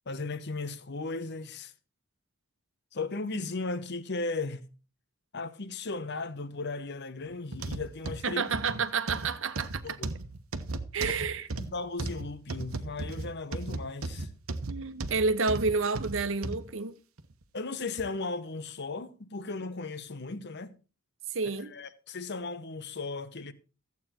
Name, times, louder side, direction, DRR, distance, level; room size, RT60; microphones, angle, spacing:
voice 1, 0.1-1.7 2.9-4.7 5.3-8.4 9.8-10.1 11.1-11.2 11.5-14.3 17.5-20.7 21.7-23.5, left 3 dB, 55° left, 1.0 m, -36 dB
sound 1, 7.5-16.6 17.2-17.3 18.0-18.1, right 2 dB, 90° right, 1.2 m, -36 dB
voice 2, 8.2-10.0 10.9-11.5 14.7-17.0 21.3-21.7, right 4 dB, 65° right, 1.1 m, -30 dB
14.5 x 8.4 x 4.4 m
head